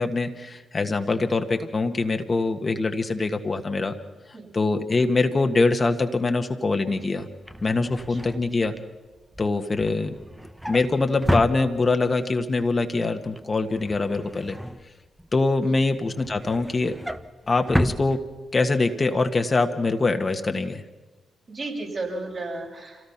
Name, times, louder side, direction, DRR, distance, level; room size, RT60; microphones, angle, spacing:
voice 1, 0.0-3.9 4.5-7.3 7.6-8.7 9.4-10.1 10.7-14.6 15.3-16.9 17.5-18.2 18.5-20.8, left 3 dB, 40° left, 6 dB, 1.6 m, -23 dB
Drawer open or close, 7.3-12.2 12.6-12.9 13.2-15.4 15.8-18.8 19.2-19.4 19.6-19.7, equal, 5° right, 1.1 m, -32 dB
voice 2, 21.5-23.1, right 2 dB, 50° right, -2 dB, 7.2 m, -34 dB
26.5 x 17.5 x 5.9 m, 1.2 s
hypercardioid pair, 40°, 0 cm